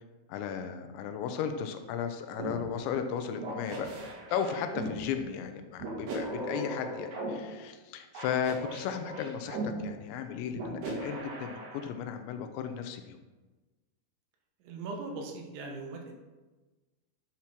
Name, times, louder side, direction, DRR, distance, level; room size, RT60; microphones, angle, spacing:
voice 1, 0.3-3.9 4.3-13.2, left 7 dB, 80° left, 7 dB, 2.9 m, -35 dB
sound 1, 2.4-2.6 3.4-4.9 5.8-7.3 8.2-9.7 10.5-11.9, right 2 dB, 60° right, 3.5 m, -38 dB
voice 2, 14.6-16.1, right 3 dB, 85° right, 1 dB, 3.8 m, -40 dB
11.0 x 4.4 x 5.9 m, 1.2 s
omnidirectional pair, 5.4 m